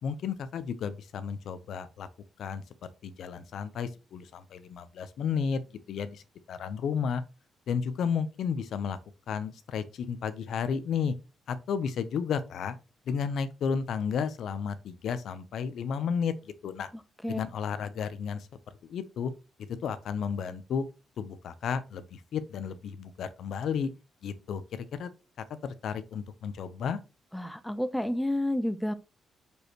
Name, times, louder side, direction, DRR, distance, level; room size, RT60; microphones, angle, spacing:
voice 1, 0.0-2.1 2.4-5.6 5.9-6.2 6.5-7.2 7.7-9.0 9.3-11.1 11.5-12.8 13.1-16.9 17.3-19.3 19.8-20.9 21.2-23.9 24.2-25.1 25.4-27.0, left 6 dB, 65° left, 0.7 m, -33 dB
voice 2, 27.3-28.9, left 1 dB, 5° left, 0.4 m, -30 dB
6.3 x 5.3 x 3.0 m
cardioid pair, 135°, 0 cm